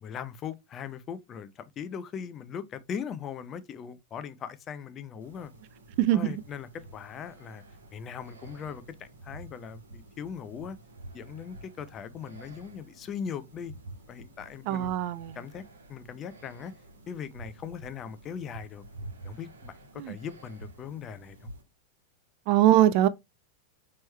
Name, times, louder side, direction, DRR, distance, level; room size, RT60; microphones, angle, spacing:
voice 1, 0.0-5.5 6.1-7.6 7.9-10.8 11.1-13.7 14.1-14.9 15.3-15.6 15.9-16.7 17.1-18.8 19.2-21.5, left 7 dB, 30° left, 0.5 m, -39 dB
sound 1, 5.2-21.6, right 1 dB, 70° right, 1.1 m, -49 dB
voice 2, 6.0-6.3 14.7-15.4 20.0-20.2 22.5-23.1, right 13 dB, 45° right, 0.3 m, -22 dB
4.4 x 3.1 x 3.1 m
figure-of-eight pair, 90°, 0 cm